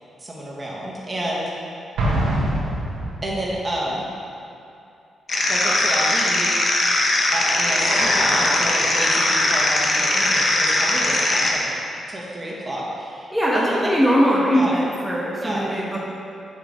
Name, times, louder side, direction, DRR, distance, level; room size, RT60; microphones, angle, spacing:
voice 1, 0.2-1.5 3.2-4.1 5.5-6.6 7.3-11.6 12.1-13.9 14.5-14.7 15.4-15.6, right 1 dB, 30° right, -4 dB, 1.6 m, -30 dB
Explosion, 2.0-3.6, right 1 dB, 85° right, 1.4 m, -23 dB
sound 1, 5.3-11.5, left 1 dB, 45° left, 1.1 m, -20 dB
voice 2, 13.3-16.0, equal, ahead, -6 dB, 1.2 m, -20 dB
7.1 x 6.1 x 3.7 m, 2.6 s
cardioid pair, 70°, 0 cm